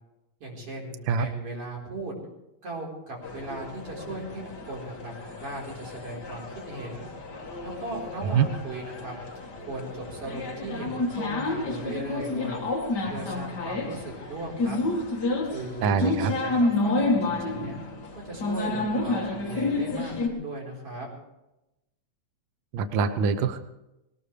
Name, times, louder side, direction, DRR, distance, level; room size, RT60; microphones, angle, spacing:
voice 1, 0.4-2.2 2.6-7.1 7.6-9.2 9.6-12.6 13.1-14.8 15.4-17.8 18.1-21.1, right 2 dB, 50° right, -3 dB, 5.4 m, -37 dB
sound 1, 3.2-20.3, left 2 dB, 40° left, 2.2 m, -30 dB
voice 2, 15.8-16.3 22.7-23.6, right 6 dB, 75° right, 10 dB, 1.1 m, -24 dB
20.0 x 19.5 x 3.4 m, 0.92 s
omnidirectional pair, 3.3 m